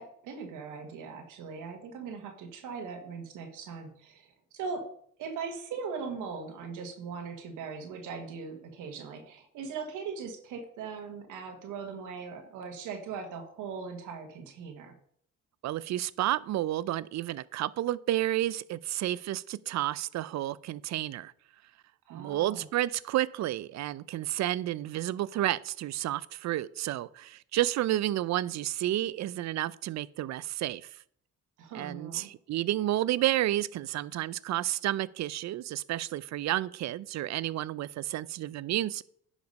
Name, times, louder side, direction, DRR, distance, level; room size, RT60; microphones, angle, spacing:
voice 1, 0.0-4.9 5.2-14.9 22.1-22.7 31.6-32.3, right 5 dB, 90° right, 1.4 m, -40 dB
voice 2, 15.6-21.3 22.1-31.0 31.7-39.0, right 14 dB, 65° right, 0.5 m, -31 dB
10.5 x 5.0 x 5.2 m
cardioid pair, 90°, 30 cm